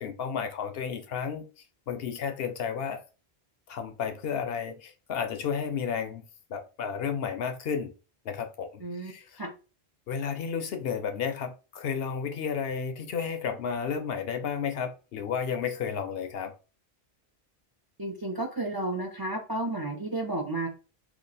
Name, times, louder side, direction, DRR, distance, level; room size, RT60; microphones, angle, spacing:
voice 1, 0.0-1.5 1.9-3.0 3.7-6.2 6.5-7.9 8.2-8.7 9.0-9.4 10.1-16.5, left 6 dB, 70° left, 0.8 m, -32 dB
voice 2, 8.8-9.1 9.4-9.5 18.0-20.7, right 2 dB, 30° right, 0.4 m, -32 dB
2.9 x 2.4 x 3.9 m
omnidirectional pair, 1.1 m